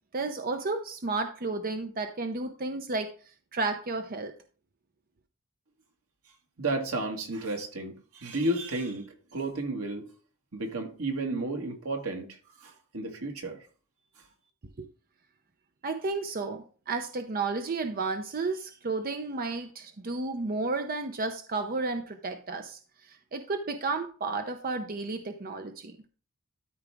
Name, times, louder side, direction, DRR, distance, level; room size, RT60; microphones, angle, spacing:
voice 1, 0.1-3.1 3.5-4.3 14.8-14.9 15.8-26.0, right 3 dB, 45° right, 0.6 m, -32 dB
voice 2, 6.6-10.1 10.5-13.6, right 2 dB, 85° right, 1.9 m, -32 dB
13.0 x 4.6 x 3.5 m
head